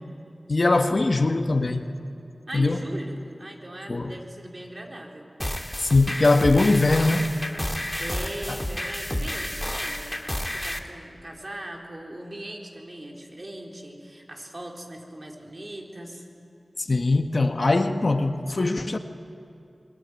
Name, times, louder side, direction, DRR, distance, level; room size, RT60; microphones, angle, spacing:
voice 1, 0.5-1.9 2.5-2.8 3.9-4.1 5.8-7.3 8.5-8.6 16.8-19.0, left 2 dB, 60° left, 7 dB, 1.3 m, -21 dB
voice 2, 2.5-5.3 8.0-16.2, right 1 dB, 45° right, 0 dB, 4.0 m, -39 dB
sound 1, 5.4-10.8, left 1 dB, 15° left, 2.0 m, -30 dB
24.0 x 22.0 x 9.6 m, 2.6 s
wide cardioid pair, 45°, 0 cm